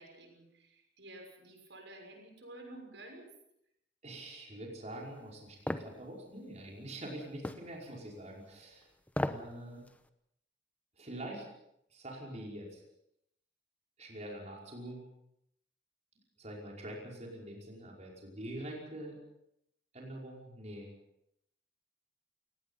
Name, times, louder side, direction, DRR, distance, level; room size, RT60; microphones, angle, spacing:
voice 1, 0.0-3.3, right 1 dB, 80° right, 3 dB, 6.3 m, -51 dB
voice 2, 4.0-8.9 9.2-9.9 11.0-11.5 11.9-12.8 14.0-15.0 16.4-19.2 19.9-20.9, right 1 dB, 40° right, -2 dB, 5.4 m, -45 dB
sound 1, 5.7-5.9 7.4-7.7 9.1-9.5 9.9-10.0, left 1 dB, 10° left, 1.0 m, -34 dB
28.5 x 18.5 x 5.6 m, 0.77 s
head